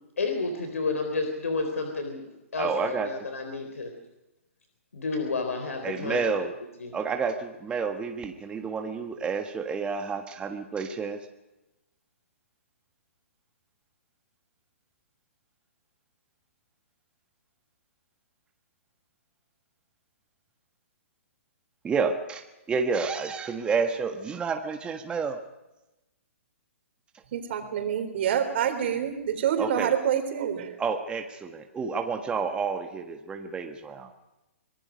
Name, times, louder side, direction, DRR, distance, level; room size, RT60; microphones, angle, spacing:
voice 1, 0.2-2.3 2.5-3.9 4.9-6.5 6.8-6.9, left 3 dB, 80° left, 5 dB, 3.7 m, -30 dB
voice 2, 2.6-3.1 5.8-6.5 6.9-11.2 21.8-25.4 29.6-29.9 30.8-34.1, right 5 dB, 15° right, 5 dB, 1.6 m, -30 dB
voice 3, 27.3-30.8, right 9 dB, 55° right, 7 dB, 3.9 m, -27 dB
25.5 x 19.5 x 5.3 m, 0.98 s
hypercardioid pair, 135°, 8 cm